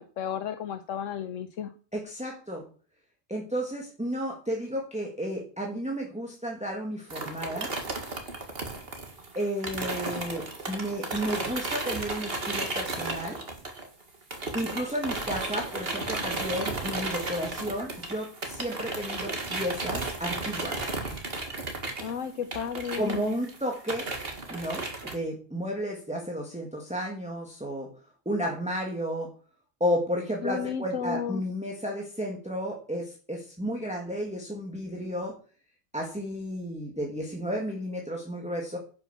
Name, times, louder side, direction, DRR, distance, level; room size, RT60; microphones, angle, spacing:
voice 1, 0.0-1.7 22.0-23.3 30.4-31.4, left 8 dB, 80° left, 9 dB, 1.1 m, -33 dB
voice 2, 1.9-2.6 3.3-7.7 9.3-13.4 14.5-20.9 22.9-24.1 24.5-27.9 28.2-29.3 29.8-35.3 35.9-38.8, equal, 5° right, -1 dB, 1.8 m, -32 dB
sound 1, 7.1-14.0 14.3-25.2, right 2 dB, 50° right, 2.2 m, -34 dB
10.5 x 6.2 x 7.1 m, 0.41 s
omnidirectional pair, 1.3 m